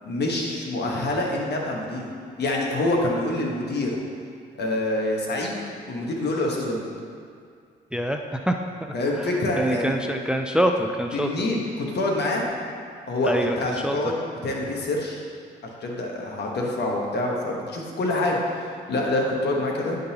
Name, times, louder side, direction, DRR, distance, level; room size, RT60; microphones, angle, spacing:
voice 1, 0.0-2.1 2.4-3.9 4.6-5.6 5.9-6.8 8.9-10.0 11.1-12.5 13.1-14.1 14.4-15.2 15.8-20.0, left 1 dB, 60° left, -1 dB, 1.3 m, -26 dB
voice 2, 7.9-8.5 9.2-9.3 9.6-11.3 13.2-14.0, equal, 5° right, 4 dB, 0.4 m, -25 dB
10.0 x 3.9 x 2.9 m, 2.3 s
supercardioid pair, 60°, 19 cm